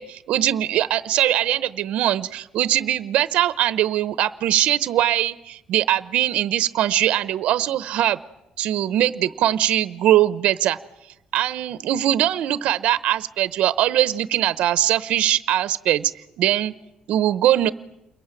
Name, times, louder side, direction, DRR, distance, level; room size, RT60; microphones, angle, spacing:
voice 1, 0.0-8.2 8.6-10.8 11.3-16.1 16.4-16.7 17.1-17.7, right 12 dB, 80° right, 14 dB, 0.9 m, -21 dB
29.0 x 22.0 x 9.1 m, 0.92 s
cardioid pair, 125°, 2 cm